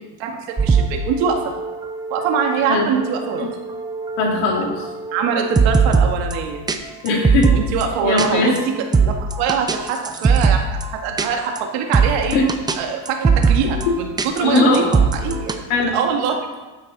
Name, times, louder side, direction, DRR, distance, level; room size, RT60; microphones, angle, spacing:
voice 1, 0.2-1.4 2.1-3.5 5.1-6.6 7.5-8.7 9.0-12.4 12.8-16.4, right 6 dB, 90° right, 3 dB, 2.1 m, -23 dB
sound 1, 0.6-6.4 6.7-6.8 7.1-7.8 8.2-8.3 8.6-8.7 8.9-10.9 11.2-11.3 11.6-11.7 11.9-12.8 13.1-13.9 14.2-15.6, right 5 dB, 10° right, 0.4 m, -20 dB
voice 2, 4.2-4.9 7.0-7.5 8.0-8.5 12.3-12.4 13.6-13.7 14.4-14.9 15.7-16.0, left 3 dB, 90° left, -1 dB, 3.3 m, -19 dB
13.0 x 9.0 x 4.1 m, 1.2 s
cardioid pair, 155°, 44 cm